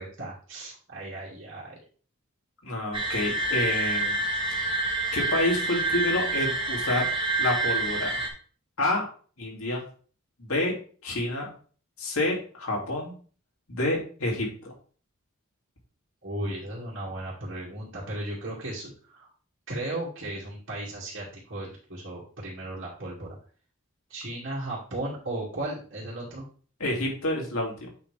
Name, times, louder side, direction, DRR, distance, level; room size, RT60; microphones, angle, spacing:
voice 1, 0.0-1.8 16.2-19.3 19.7-23.4 24.1-26.4, right 1 dB, 55° right, -8 dB, 2.4 m, -36 dB
voice 2, 2.6-4.2 5.1-7.1 7.4-8.3 8.8-9.0 9.4-9.8 10.4-10.7 11.0-11.5 12.0-13.1 13.7-14.7 26.8-27.9, left 1 dB, 85° left, -1 dB, 2.8 m, -28 dB
sound 1, 2.9-8.3, right 2 dB, 25° right, 1.6 m, -27 dB
8.2 x 5.2 x 3.5 m, 0.42 s
head